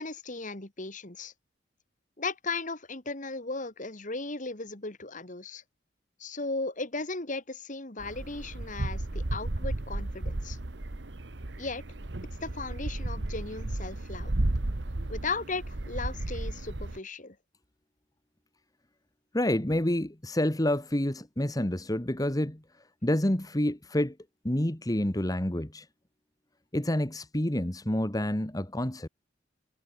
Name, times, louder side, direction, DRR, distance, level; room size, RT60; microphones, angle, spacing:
voice 1, 0.0-1.3 2.2-5.6 6.2-10.6 11.6-11.8 12.4-14.3 15.1-17.4, left 3 dB, 45° left, 2.5 m, -36 dB
sound 1, 8.0-17.0, right 1 dB, 65° right, 1.3 m, -33 dB
voice 2, 19.3-22.6 23.0-24.1 24.4-25.9 26.7-29.1, left 1 dB, 20° left, 1.4 m, -28 dB
head